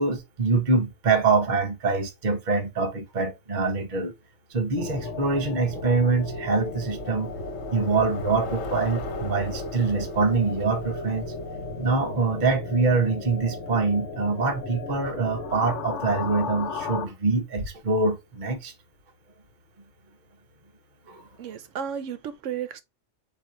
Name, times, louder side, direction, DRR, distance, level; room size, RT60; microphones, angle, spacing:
voice 1, 0.0-4.1 4.5-7.3 7.7-11.3 11.8-18.7 21.1-21.2, right 4 dB, 40° right, 1.0 m, -24 dB
sound 1, 4.8-17.1, left 3 dB, 65° left, 0.9 m, -35 dB
Bicycle, 6.3-12.8, left 3 dB, 85° left, 1.3 m, -40 dB
voice 2, 21.4-22.8, right 8 dB, 75° right, 1.0 m, -33 dB
4.6 x 2.5 x 4.3 m
omnidirectional pair, 1.3 m